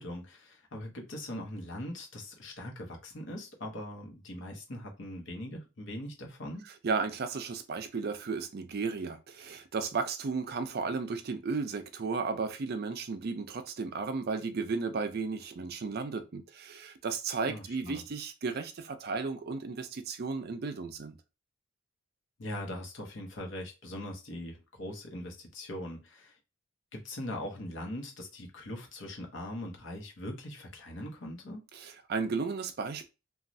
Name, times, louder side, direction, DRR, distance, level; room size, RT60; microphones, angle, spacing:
voice 1, 0.0-6.7 17.4-18.0 22.4-26.4 26.9-31.6, left 1 dB, 65° left, 0.9 m, -41 dB
voice 2, 6.8-21.2 31.7-33.1, right 4 dB, 50° right, 0.4 m, -34 dB
3.0 x 2.3 x 2.6 m
head